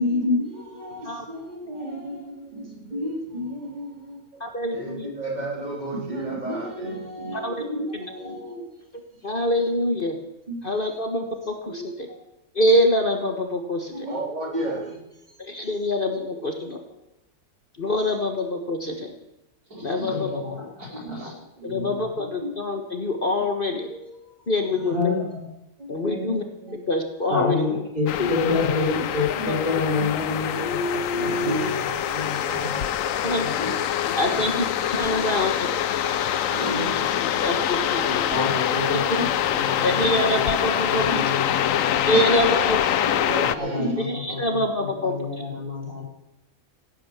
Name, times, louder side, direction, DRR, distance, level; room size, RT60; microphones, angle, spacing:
voice 1, 0.0-4.4 4.7-8.7 10.5-11.0 11.7-12.2 13.9-15.0 15.3-15.4 16.4-16.7 19.9-20.2 21.0-21.3 21.6-22.5 23.8-24.3 24.7-25.0 25.8-26.8 28.5-29.1 29.4-29.5 30.0-33.7 34.3-34.7 35.1-37.6 38.1-38.2 41.1-41.3 42.0-44.0, equal, 25° right, -1 dB, 3.5 m, -32 dB
voice 2, 4.4-5.1 7.4-7.7 9.2-10.2 10.6-12.1 12.5-14.1 15.4-16.8 17.8-19.1 19.8-20.4 21.6-23.9 24.5-25.1 25.9-26.4 26.9-27.6 28.2-28.3 33.2-33.4 34.2-34.6 34.9-35.7 37.4-38.3 39.8-41.2 42.1-42.8 44.0-45.1, left 1 dB, 35° left, 4 dB, 1.5 m, -25 dB
voice 3, 19.7-21.3 21.6-22.0 24.8-25.4 27.3-32.9 33.4-33.5 38.3-42.2 43.4-46.0, left 4 dB, 65° right, -3 dB, 5.6 m, -29 dB
sound 1, 28.1-43.5, left 10 dB, 65° left, 1.0 m, -25 dB
17.0 x 9.7 x 7.1 m, 0.91 s
omnidirectional pair, 1.7 m